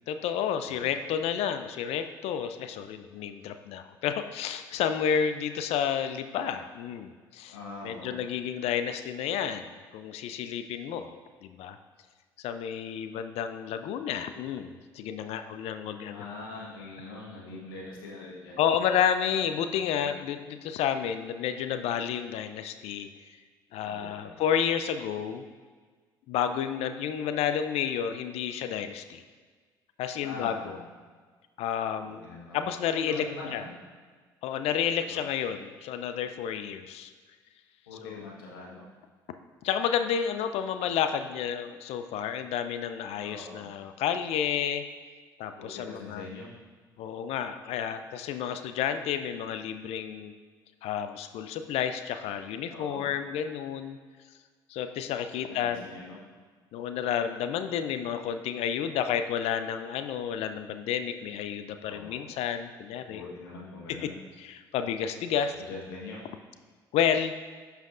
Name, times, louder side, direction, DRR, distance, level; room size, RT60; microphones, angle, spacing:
voice 1, 0.1-7.6 7.8-11.1 11.4-11.8 12.4-16.3 18.6-23.1 23.7-25.4 26.3-29.2 30.0-30.8 31.6-32.3 32.5-33.2 33.5-33.6 34.4-37.1 38.0-38.3 39.6-44.8 45.4-46.3 47.0-50.3 50.8-54.0 54.7-55.8 56.7-63.2 64.4-65.5 66.9-67.3, left 8 dB, 65° left, 9 dB, 0.5 m, -30 dB
voice 2, 7.5-8.2 16.1-18.6 19.7-20.1 23.8-24.5 30.2-30.8 32.0-32.7 33.0-33.7 35.0-35.2 37.9-38.9 43.2-43.7 45.6-46.5 52.7-53.1 55.5-56.2 61.9-62.3 63.1-64.2 65.6-66.2, left 3 dB, 85° left, -4 dB, 1.5 m, -43 dB
11.0 x 5.7 x 2.6 m, 1.5 s
hypercardioid pair, 55°, 11 cm